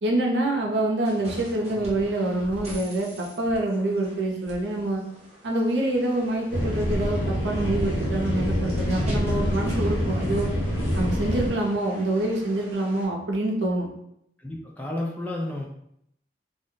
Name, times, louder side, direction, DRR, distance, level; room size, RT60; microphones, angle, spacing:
voice 1, 0.0-5.0 5.4-10.5 11.0-13.9, right 1 dB, 80° right, 0 dB, 0.7 m, -26 dB
sound 1, 1.0-13.1, right 1 dB, 40° right, 0.8 m, -44 dB
sound 2, 6.5-11.5, equal, 85° left, 0.9 m, -26 dB
voice 2, 14.4-15.7, left 1 dB, 10° left, -1 dB, 0.4 m, -31 dB
2.4 x 2.1 x 3.7 m, 0.73 s
head